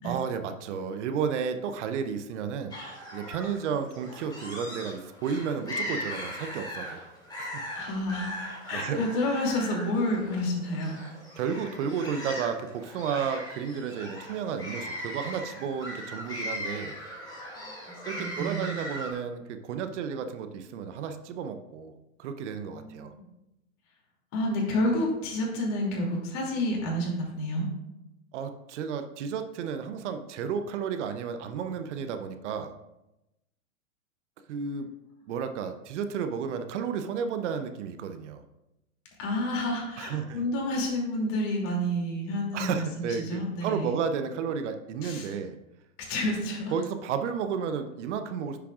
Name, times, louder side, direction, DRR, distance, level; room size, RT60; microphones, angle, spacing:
voice 1, 0.0-2.7 3.1-7.0 7.4-7.6 8.7-9.0 11.4-17.0 18.0-23.1 28.3-32.7 34.5-34.9 35.3-38.4 40.0-40.4 42.5-45.6 46.7-48.6, right 6 dB, 60° right, 8 dB, 0.8 m, -32 dB
sound 1, 2.7-19.1, left 1 dB, 10° left, 2.8 m, -39 dB
voice 2, 7.8-8.3 8.7-10.9 18.2-18.7 22.6-23.3 24.3-27.7 39.2-43.9 45.0-45.3 46.1-46.7, left 1 dB, 45° left, -1 dB, 2.7 m, -29 dB
9.8 x 6.7 x 2.4 m, 0.93 s
hypercardioid pair, 110°, 40 cm